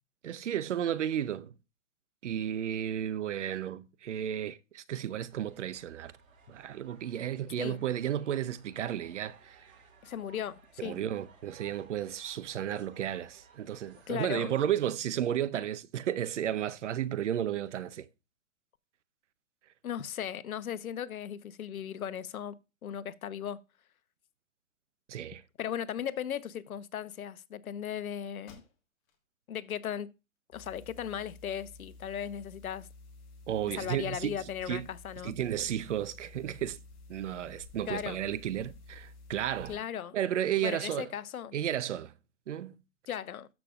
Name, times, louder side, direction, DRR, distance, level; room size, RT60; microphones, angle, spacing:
voice 1, 0.2-1.5 2.2-6.1 6.5-9.7 10.8-18.1 25.1-25.4 33.5-34.9 35.2-36.8 37.1-39.8 40.1-41.1 41.5-42.1 42.5-42.7, right 10 dB, 55° right, 0.8 m, -33 dB
sound 1, 5.3-14.1, right 5 dB, 75° right, 5.3 m, -59 dB
voice 2, 10.0-11.0 14.1-14.5 19.8-22.5 22.8-23.6 25.6-28.6 29.5-30.1 30.5-32.9 33.8-35.3 37.9-38.2 39.7-40.2 40.6-41.5 43.1-43.5, left 9 dB, 80° left, 0.9 m, -37 dB
sound 2, 28.5-29.3 29.7-29.8 30.4-31.3, left 4 dB, 25° left, 1.7 m, -59 dB
sound 3, 30.5-39.8, left 3 dB, 40° left, 5.0 m, -52 dB
13.5 x 6.1 x 2.5 m
hypercardioid pair, 160°, 42 cm